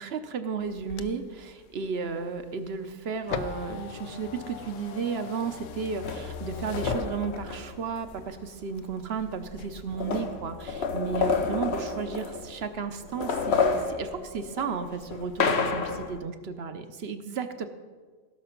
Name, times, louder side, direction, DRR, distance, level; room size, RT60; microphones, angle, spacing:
voice 1, 0.0-17.7, right 5 dB, 60° right, 9 dB, 1.0 m, -33 dB
sound 1, 0.6-7.7 8.1-9.1 9.5-10.0, left 8 dB, 80° left, 1.0 m, -40 dB
sound 2, 6.0-8.2 9.2-9.3 9.5-12.7 13.0-16.2, left 5 dB, 60° left, 1.1 m, -29 dB
16.5 x 6.0 x 5.9 m, 1.5 s
omnidirectional pair, 1.3 m